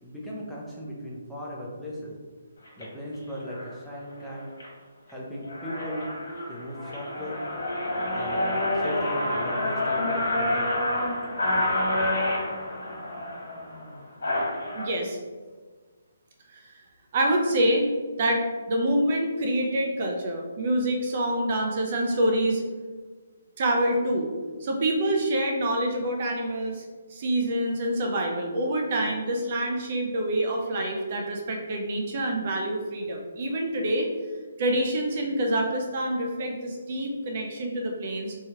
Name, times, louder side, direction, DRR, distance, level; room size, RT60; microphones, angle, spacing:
voice 1, 0.0-2.1 2.8-4.5 5.1-6.1 6.5-7.4 8.1-8.5 8.7-10.1 10.3-10.7, equal, ahead, -6 dB, 0.6 m, -37 dB
sound 1, 2.6-2.8 3.5-3.7 4.2-4.7 5.1-5.2 5.4-14.9, left 1 dB, 70° left, 1.1 m, -28 dB
voice 2, 14.8-15.2 16.5-16.7 17.1-17.9 18.2-22.6 23.6-24.3 24.6-26.8 27.1-34.1 34.6-38.3, right 1 dB, 45° right, 1 dB, 0.4 m, -26 dB
2.9 x 2.3 x 2.9 m, 1.4 s
figure-of-eight pair, 145°, 0 cm